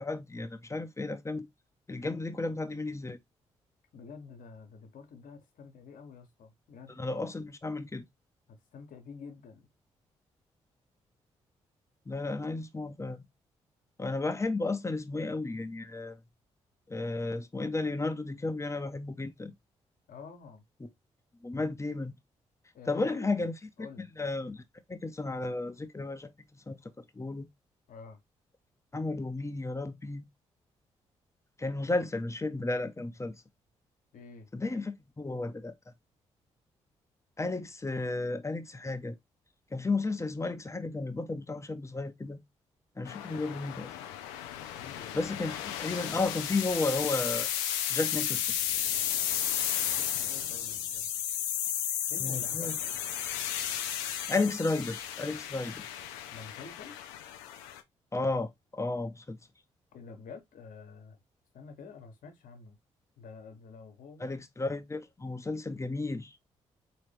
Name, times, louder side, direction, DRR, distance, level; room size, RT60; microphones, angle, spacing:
voice 1, 0.0-1.5 1.9-3.2 7.0-8.0 12.1-13.2 14.0-16.2 16.9-19.5 20.8-20.9 21.4-22.1 22.9-24.6 24.9-26.8 27.1-27.5 28.9-30.2 31.6-33.3 34.5-35.7 37.4-39.2 39.7-42.4 43.0-43.9 45.1-47.5 47.9-48.5 52.2-52.8 54.1-55.9 58.1-59.4 64.2-66.4, left 3 dB, 20° left, 0.8 m, -33 dB
voice 2, 3.9-7.0 8.5-9.7 20.1-20.6 22.7-23.5 23.8-24.1 27.9-28.2 34.1-34.5 44.7-45.1 49.9-51.1 52.1-52.9 56.3-57.0 59.9-61.2 61.5-62.8 63.2-64.3, left 5 dB, 65° left, 1.1 m, -48 dB
sound 1, 43.1-57.8, left 10 dB, 80° left, 0.5 m, -34 dB
3.8 x 3.0 x 3.2 m
hypercardioid pair, 40°, 15 cm